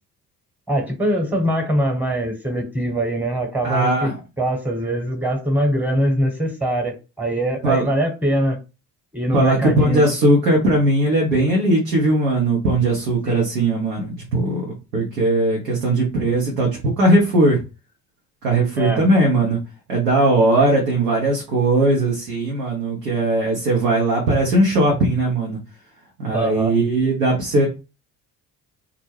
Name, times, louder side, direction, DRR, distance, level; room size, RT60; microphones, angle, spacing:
voice 1, 0.7-4.1 4.4-8.6 9.1-10.0 13.2-13.5 18.8-19.1 26.3-26.7, right 1 dB, 5° right, 1.0 m, -22 dB
voice 2, 3.6-4.1 7.6-7.9 9.3-14.7 14.9-17.6 18.4-19.6 19.9-25.6 26.2-27.7, right 2 dB, 90° right, 0.7 m, -19 dB
2.3 x 2.1 x 3.2 m
hypercardioid pair, 45°, 47 cm